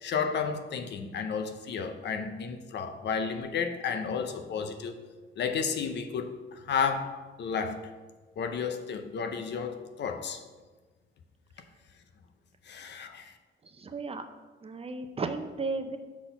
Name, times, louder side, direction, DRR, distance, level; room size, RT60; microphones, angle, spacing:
voice 1, 0.0-5.0 5.4-6.3 6.7-7.9 8.4-10.4 12.7-13.3, left 6 dB, 60° left, 7 dB, 0.7 m, -32 dB
voice 2, 13.6-14.3 14.6-16.0, right 3 dB, 30° right, 8 dB, 0.6 m, -34 dB
6.0 x 4.3 x 5.5 m, 1.3 s
cardioid pair, 90°, 20 cm